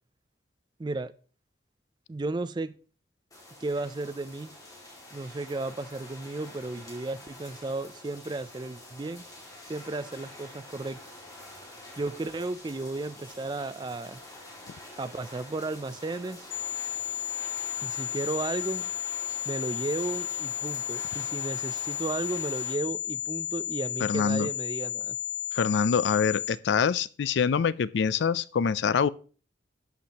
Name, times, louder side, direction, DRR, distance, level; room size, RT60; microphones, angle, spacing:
voice 1, 0.8-1.1 2.1-2.7 3.6-4.5 5.1-9.2 9.7-11.0 12.0-14.2 15.0-16.5 17.8-18.9 19.5-25.2, right 2 dB, 25° right, 0.4 m, -34 dB
sound 1, 3.3-22.8, left 1 dB, 20° left, 2.3 m, -47 dB
sound 2, 16.5-26.5, left 12 dB, 45° left, 1.0 m, -33 dB
voice 2, 24.0-24.5 25.5-29.1, left 6 dB, 75° left, 0.4 m, -25 dB
11.5 x 7.5 x 2.9 m
head